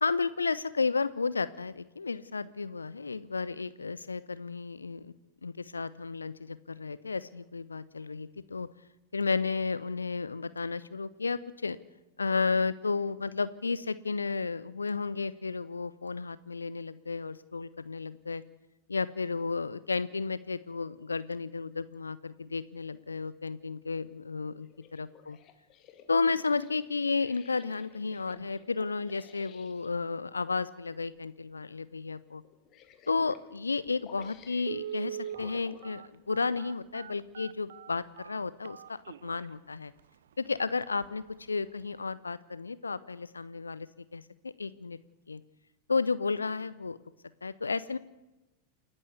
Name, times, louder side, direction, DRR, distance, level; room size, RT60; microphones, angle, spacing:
voice 1, 0.0-5.1 5.4-8.7 9.1-11.8 12.2-18.4 18.9-25.4 26.1-32.4 33.1-39.9 40.4-43.9 44.1-45.0 45.3-45.4 45.9-47.0 47.4-48.0, left 4 dB, 75° left, 17 dB, 0.6 m, -32 dB
sound 1, 24.6-29.9 31.0-31.2 31.6-31.7 32.4-33.5 34.0-36.7 37.4-37.5, left 9 dB, 35° left, 2.1 m, -55 dB
Telephone, 33.9-34.0 34.6-39.5 40.0-40.1 40.5-40.6 41.0-41.3 41.6-41.7, right 9 dB, 65° right, 0.7 m, -41 dB
28.5 x 11.0 x 8.2 m, 1.0 s
figure-of-eight pair, 90°, 0 cm